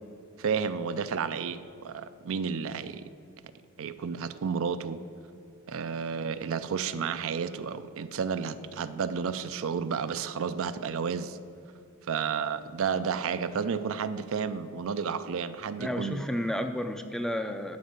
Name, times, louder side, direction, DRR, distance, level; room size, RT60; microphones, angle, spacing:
voice 1, 0.4-3.0 3.8-5.0 5.7-11.4 12.1-16.2, right 6 dB, 65° right, 0.4 m, -31 dB
voice 2, 15.8-17.8, equal, ahead, 0.4 m, -31 dB
11.5 x 5.3 x 6.6 m
head